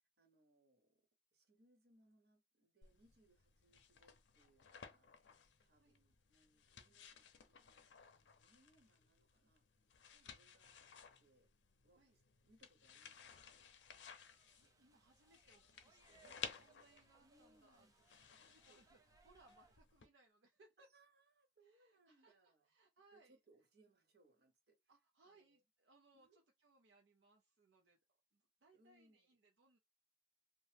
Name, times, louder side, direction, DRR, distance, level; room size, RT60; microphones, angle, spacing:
voice 1, 0.2-1.0 1.3-5.1 5.6-7.8 8.1-9.6 10.3-11.5 11.8-13.4 16.2-16.4 17.2-18.2 18.7-18.8 20.9-22.7 23.1-24.7 25.2-25.6 26.1-26.4 28.7-29.3, right 2 dB, 65° right, 1.0 m, -73 dB
sound 1, 2.8-20.1, left 7 dB, 90° left, 0.5 m, -57 dB
sound 2, 14.0-19.8, right 3 dB, 20° right, 0.4 m, -72 dB
voice 2, 14.6-17.9 18.2-20.9 21.6-23.4 24.9-28.0 28.3-29.8, right 2 dB, 85° right, 0.5 m, -71 dB
2.8 x 2.1 x 3.3 m
head